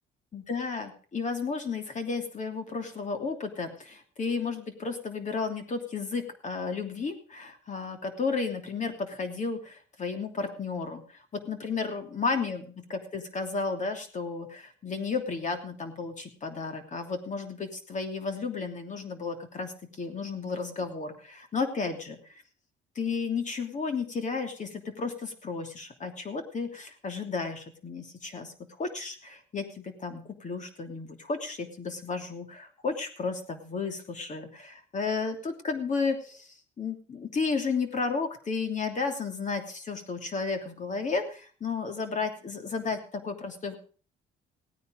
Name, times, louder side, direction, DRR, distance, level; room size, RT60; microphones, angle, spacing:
voice 1, 0.3-11.0 11.3-12.6 12.9-19.7 20.0-22.2 22.9-28.5 28.8-43.8, left 4 dB, 40° left, 6 dB, 3.0 m, -33 dB
17.5 x 9.5 x 5.2 m, 0.41 s
cardioid pair, 105°, 20 cm